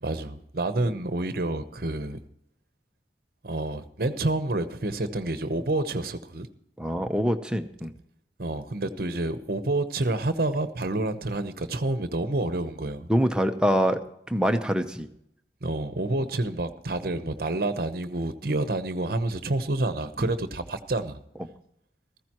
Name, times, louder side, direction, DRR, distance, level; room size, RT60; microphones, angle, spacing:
voice 1, 0.0-2.2 3.4-6.5 8.4-13.1 15.6-21.2, right 2 dB, 55° right, 0.9 m, -28 dB
voice 2, 6.8-7.9 13.1-14.0 14.3-15.1 18.5-18.6 20.2-20.3, equal, 5° right, 0.7 m, -25 dB
15.5 x 14.5 x 3.0 m
head